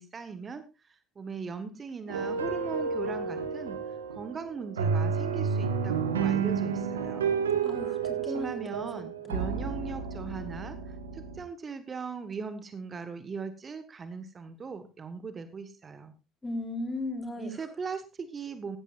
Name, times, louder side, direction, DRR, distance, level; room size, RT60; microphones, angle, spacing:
voice 1, 0.0-3.8 4.1-7.3 8.2-16.1 17.4-18.8, right 5 dB, 35° right, 11 dB, 1.4 m, -39 dB
sound 1, 2.1-11.4, right 6 dB, 85° right, 1.5 m, -31 dB
voice 2, 7.6-9.4 16.4-17.6, left 2 dB, 20° left, 6 dB, 3.5 m, -37 dB
16.0 x 15.0 x 2.5 m, 0.27 s
hypercardioid pair, 60°, 0 cm